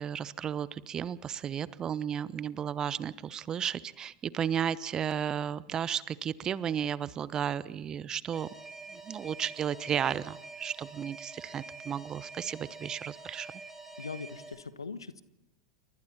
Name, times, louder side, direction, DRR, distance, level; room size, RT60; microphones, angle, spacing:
voice 1, 0.0-8.5 8.9-13.5, right 8 dB, 25° right, 19 dB, 1.0 m, -33 dB
Alarm, 8.3-14.5, right 3 dB, 10° right, 4.8 m, -47 dB
voice 2, 14.0-15.2, left 4 dB, 80° left, 14 dB, 1.3 m, -41 dB
29.0 x 24.5 x 4.3 m, 0.91 s
figure-of-eight pair, 90°, 2 cm